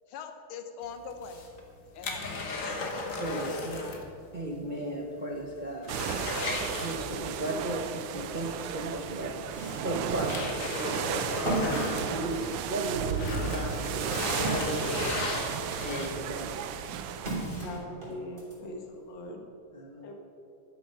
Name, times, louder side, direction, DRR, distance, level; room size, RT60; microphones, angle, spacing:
voice 1, 0.1-1.5 1.9-2.7, left 6 dB, 85° left, 7 dB, 1.8 m, -42 dB
sound 1, 1.1-4.1 4.4-4.5 4.9-5.0 5.4-7.4 8.8-8.9 9.6-12.7 13.0-16.4 16.9-17.0, left 3 dB, 45° left, 1.5 m, -35 dB
voice 2, 3.1-4.1 4.3-6.3 6.7-15.1 15.8-16.7 19.7-20.1, right 1 dB, 45° right, -1 dB, 0.6 m, -36 dB
sound 2, 5.9-17.5, right 8 dB, 90° right, 1.6 m, -34 dB
sound 3, 9.4-15.5 16.0-18.6, right 1 dB, 25° right, 2.9 m, -37 dB
voice 3, 17.5-19.5 20.0-20.1, left 1 dB, 60° left, 2 dB, 1.9 m, -41 dB
11.5 x 7.9 x 5.6 m, 2.6 s
omnidirectional pair, 2.3 m